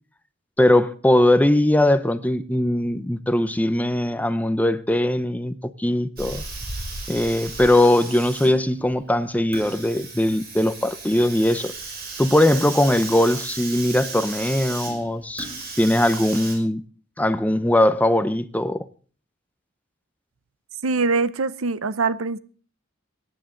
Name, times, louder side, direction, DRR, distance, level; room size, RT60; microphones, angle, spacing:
voice 1, 0.6-6.4 7.1-11.7 12.2-15.5 15.8-16.8 17.2-18.8, left 1 dB, 10° left, 0.7 m, -20 dB
Hiss, 6.2-16.5, right 3 dB, 50° right, 5.4 m, -35 dB
voice 2, 20.8-22.4, right 4 dB, 90° right, 0.8 m, -23 dB
22.0 x 10.0 x 3.8 m
head